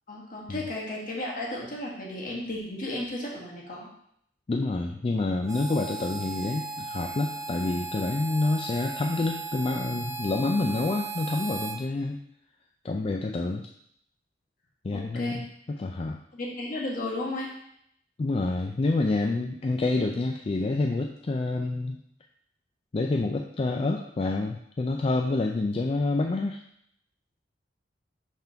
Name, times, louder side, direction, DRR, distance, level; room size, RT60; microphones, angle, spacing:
voice 1, 0.1-3.9 14.9-15.4 16.3-17.5, left 1 dB, 50° left, -3 dB, 1.7 m, -34 dB
voice 2, 4.5-12.2 12.8-13.7 14.8-16.2 18.2-22.0 22.9-26.6, left 2 dB, 35° left, 3 dB, 0.4 m, -28 dB
Harmonica, 5.5-11.8, right 3 dB, 20° right, 0.5 m, -36 dB
5.8 x 3.6 x 5.7 m, 0.72 s
head